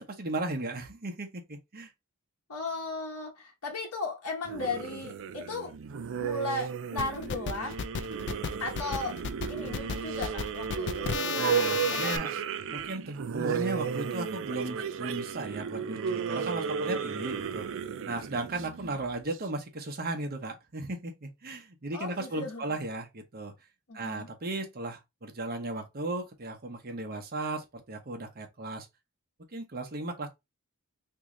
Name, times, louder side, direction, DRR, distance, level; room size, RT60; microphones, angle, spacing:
voice 1, 0.0-1.9 11.4-12.3 12.7-17.7 18.0-23.5 23.9-28.9 29.5-30.3, right 2 dB, 45° right, 0.8 m, -36 dB
voice 2, 2.5-5.7 6.2-7.8 8.6-9.2 9.5-11.1 12.0-12.3 21.9-22.8 23.9-24.3, left 3 dB, 85° left, 1.0 m, -36 dB
sound 1, 4.5-19.4, right 7 dB, 60° right, 0.4 m, -34 dB
sound 2, 7.0-12.2, left 6 dB, 55° left, 0.4 m, -34 dB
3.0 x 2.7 x 3.7 m
head